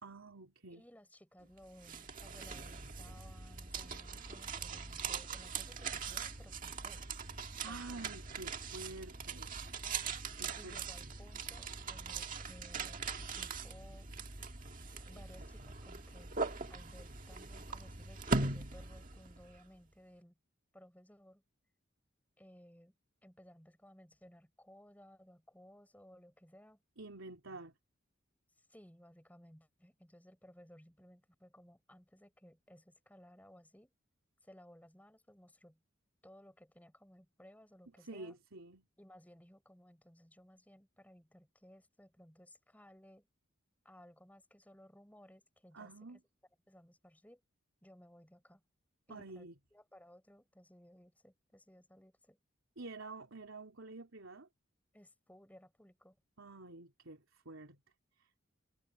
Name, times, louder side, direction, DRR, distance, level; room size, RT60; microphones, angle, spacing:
voice 1, 0.0-0.8 7.6-10.8 27.0-27.7 38.0-38.9 45.7-46.2 49.1-49.5 52.8-54.5 56.4-57.8 58.2-58.3, right 3 dB, 75° right, 3.3 m, -49 dB
voice 2, 0.7-7.1 7.6-8.2 10.6-13.1 13.3-14.1 15.0-16.4 16.7-20.4 20.7-21.4 22.4-23.0 23.2-26.8 28.6-33.9 34.4-35.8 36.2-38.4 39.0-43.3 43.8-46.2 46.7-47.4 47.8-48.6 49.1-52.4 54.9-56.2, equal, 10° left, 7.1 m, -60 dB
sound 1, 1.6-19.6, right 4 dB, 40° right, 1.8 m, -41 dB
head